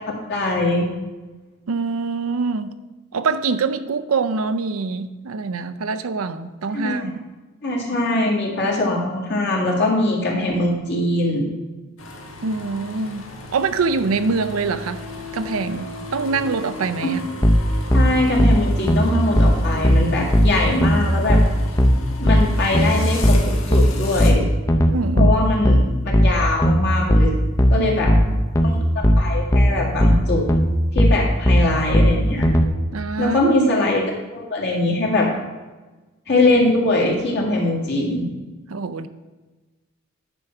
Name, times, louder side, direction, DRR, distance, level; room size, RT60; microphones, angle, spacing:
voice 1, 0.3-0.9 6.7-7.1 7.6-11.4 17.0-17.2 17.9-21.4 22.2-24.5 25.2-27.3 27.7-28.1 28.6-30.4 30.9-32.5 33.2-35.3 36.3-38.2, left 2 dB, 55° left, -2 dB, 2.1 m, -21 dB
voice 2, 1.7-2.7 3.1-7.2 12.4-13.2 13.5-15.0 15.3-17.2 24.9-25.4 27.7-27.9 28.3-28.4 32.9-33.8 38.7-39.1, right 4 dB, 80° right, 11 dB, 0.5 m, -24 dB
sound 1, 12.0-24.3, left 2 dB, 70° left, 1.3 m, -35 dB
sound 2, 17.4-32.7, equal, 15° left, 0.6 m, -16 dB
10.0 x 4.5 x 5.9 m, 1.2 s
head